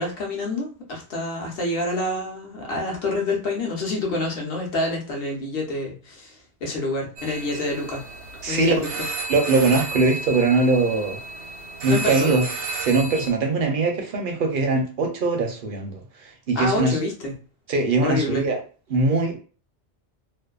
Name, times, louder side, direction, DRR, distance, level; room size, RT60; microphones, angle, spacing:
voice 1, 0.0-8.0 8.5-8.8 11.9-12.4 16.5-17.3 18.0-18.4, left 2 dB, 60° left, 1.0 m, -27 dB
sound 1, 7.2-13.3, right 3 dB, 80° right, 0.9 m, -33 dB
voice 2, 8.4-8.9 9.3-11.2 11.8-12.4 12.8-16.0 16.5-17.0 17.7-18.6 18.9-19.4, right 3 dB, 60° right, 0.6 m, -21 dB
2.6 x 2.1 x 2.3 m
omnidirectional pair, 1.2 m